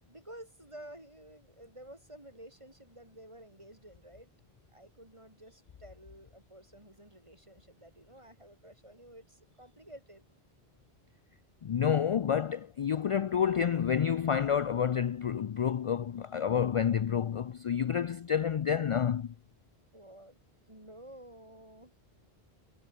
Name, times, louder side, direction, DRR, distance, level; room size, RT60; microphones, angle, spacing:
voice 1, 0.1-4.3 4.7-10.3 19.9-20.4 20.7-21.9, right 1 dB, 30° right, 5.9 m, -52 dB
voice 2, 11.6-19.3, left 8 dB, 60° left, 0.3 m, -29 dB
omnidirectional pair, 1.0 m